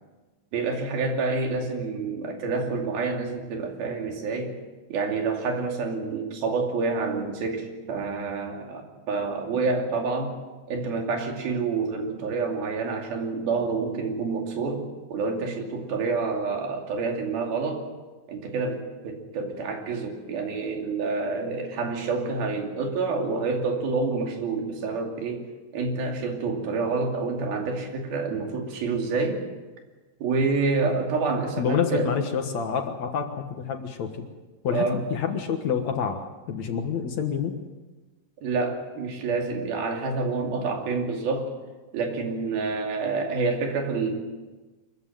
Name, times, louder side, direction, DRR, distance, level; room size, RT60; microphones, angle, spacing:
voice 1, 0.5-4.6 4.9-8.8 9.1-10.3 10.7-17.8 18.3-25.5 25.7-29.4 30.2-32.1 34.7-35.0 38.4-41.5 41.9-44.1, right 4 dB, 85° right, 3 dB, 4.5 m, -28 dB
voice 2, 31.6-34.2 34.6-37.5, left 7 dB, 60° left, 5 dB, 2.4 m, -28 dB
24.5 x 15.0 x 9.2 m, 1.3 s
omnidirectional pair, 4.2 m